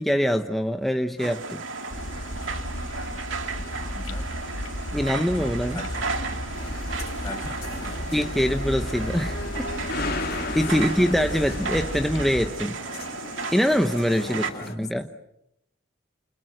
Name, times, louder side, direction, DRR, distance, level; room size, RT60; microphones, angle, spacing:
voice 1, 0.0-1.6 4.9-5.8 8.1-9.7 10.5-12.8 13.5-14.4 14.8-15.0, equal, ahead, 5 dB, 1.0 m, -24 dB
sound 1, 1.2-14.5, right 4 dB, 75° right, 2.4 m, -34 dB
sound 2, 1.9-12.5, left 1 dB, 80° left, 2.7 m, -34 dB
voice 2, 3.5-4.4 4.9-5.4 5.7-6.4 7.2-8.3 10.6-11.2 14.2-14.9, left 2 dB, 20° left, 2 dB, 6.8 m, -42 dB
sound 3, 6.5-14.7, left 3 dB, 50° left, 2.8 m, -36 dB
29.5 x 29.0 x 6.7 m, 0.82 s
head